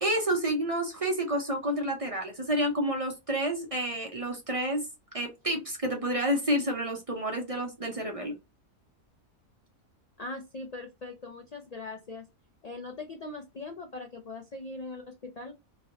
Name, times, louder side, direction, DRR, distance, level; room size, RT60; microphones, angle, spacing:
voice 1, 0.0-4.8 5.1-8.3, right 1 dB, 35° right, 2 dB, 0.6 m, -29 dB
voice 2, 10.2-12.3 12.6-15.6, left 3 dB, 85° left, 3 dB, 0.3 m, -41 dB
2.9 x 2.8 x 2.8 m, 0.24 s
omnidirectional pair, 1.5 m